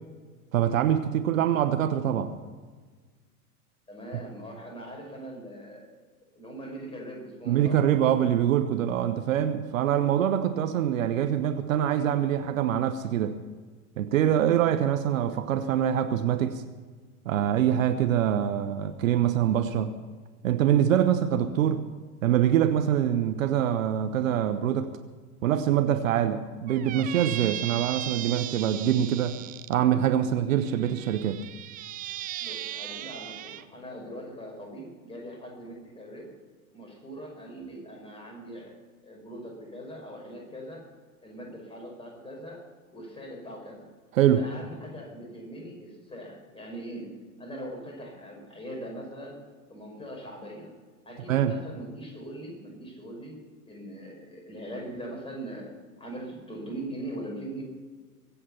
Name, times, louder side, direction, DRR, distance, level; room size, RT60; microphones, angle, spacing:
voice 1, 0.5-2.3 7.5-13.4 14.0-16.6 17.2-20.0 20.4-21.8 22.2-24.9 25.4-29.4 29.7-31.4 44.1-44.5 51.3-51.6, right 10 dB, 60° right, 9 dB, 1.1 m, -24 dB
voice 2, 3.9-5.9 6.3-7.8 32.4-36.3 36.7-38.7 39.0-40.9 41.2-43.9 44.3-47.1 47.4-49.4 49.7-50.7 51.0-55.7 56.0-57.6, right 1 dB, 10° left, 0 dB, 5.4 m, -41 dB
Squeak, 26.7-29.7 30.6-33.6, right 13 dB, 20° right, 0.5 m, -37 dB
23.0 x 8.6 x 5.7 m, 1.4 s
figure-of-eight pair, 90°, 46 cm